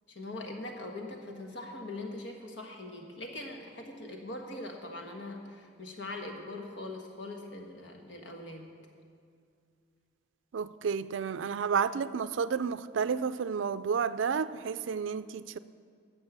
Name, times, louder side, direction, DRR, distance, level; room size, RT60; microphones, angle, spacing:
voice 1, 0.1-8.7, left 2 dB, 65° left, 1.6 m, -42 dB
voice 2, 10.5-15.6, right 6 dB, 75° right, 0.4 m, -31 dB
12.0 x 7.5 x 7.3 m
head